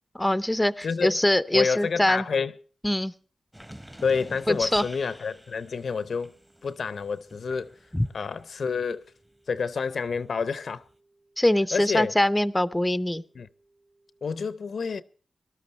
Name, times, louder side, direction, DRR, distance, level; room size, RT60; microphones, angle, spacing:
voice 1, 0.1-2.3 2.8-3.1 4.5-4.8 7.9-8.1 11.4-13.2, left 1 dB, 10° left, 0.6 m, -23 dB
voice 2, 0.8-1.2 1.5-2.5 4.0-6.3 6.6-7.8 8.1-9.0 9.5-10.8 11.7-12.1 13.3-13.5 14.2-15.0, left 5 dB, 70° left, 0.6 m, -28 dB
sound 1, 3.5-8.9 9.2-10.9, equal, 10° right, 1.1 m, -48 dB
sound 2, 4.4-14.5, right 2 dB, 90° right, 7.6 m, -66 dB
18.5 x 12.5 x 4.3 m
cardioid pair, 70°, 0 cm